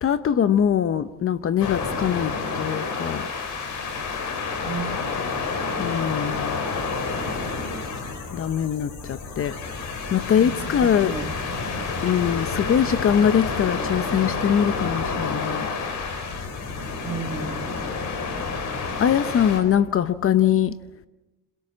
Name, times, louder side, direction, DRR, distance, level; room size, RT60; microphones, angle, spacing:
voice 1, 0.0-3.3 5.8-6.7 8.3-9.6 10.1-11.2 12.0-15.7 19.0-20.8, left 9 dB, 45° left, 0.8 m, -22 dB
sound 1, 1.6-19.6, left 4 dB, 65° left, 5.5 m, -29 dB
voice 2, 4.6-4.9 10.4-11.7 17.0-17.7, right 5 dB, 20° right, 2.4 m, -34 dB
29.5 x 17.5 x 7.4 m
cardioid pair, 110°, 32 cm